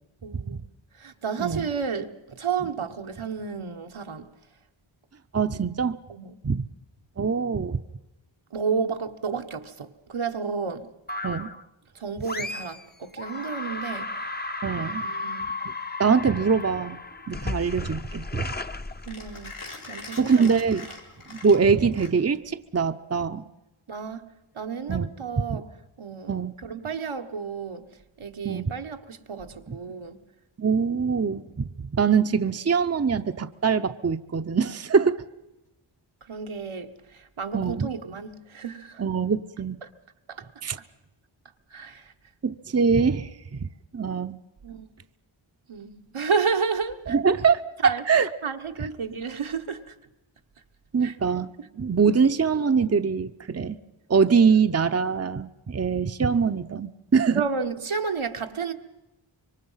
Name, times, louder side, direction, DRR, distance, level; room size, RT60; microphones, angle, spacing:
voice 1, 0.2-0.6 1.0-4.3 6.1-6.4 8.5-10.9 11.9-14.1 15.0-15.5 19.1-19.5 19.9-20.6 23.9-25.7 26.0-26.3 26.6-27.9 28.2-30.2 36.3-39.0 39.8-39.9 40.3-40.5 41.7-42.1 44.6-44.9 45.7-47.2 47.8-48.0 48.4-49.9 51.0-51.1 57.3-58.7, right 5 dB, 80° right, 1.4 m, -31 dB
voice 2, 5.3-6.0 6.4-6.7 7.2-7.8 11.2-11.5 14.6-15.1 16.0-17.0 17.3-18.5 20.2-20.9 21.3-23.4 24.9-25.1 25.5-25.6 26.3-26.5 28.4-28.7 29.7-29.8 30.6-35.2 37.5-37.9 39.0-39.8 40.6-40.8 42.4-44.4 47.1-47.6 48.1-48.3 50.9-53.8 54.1-57.4, right 5 dB, 30° right, 0.8 m, -23 dB
sound 1, 11.1-11.7 12.2-12.9 13.2-19.6, left 2 dB, 20° left, 0.8 m, -34 dB
Mechanisms, 16.6-22.5, left 3 dB, 85° left, 4.3 m, -44 dB
26.0 x 23.5 x 5.7 m
wide cardioid pair, 55°, 48 cm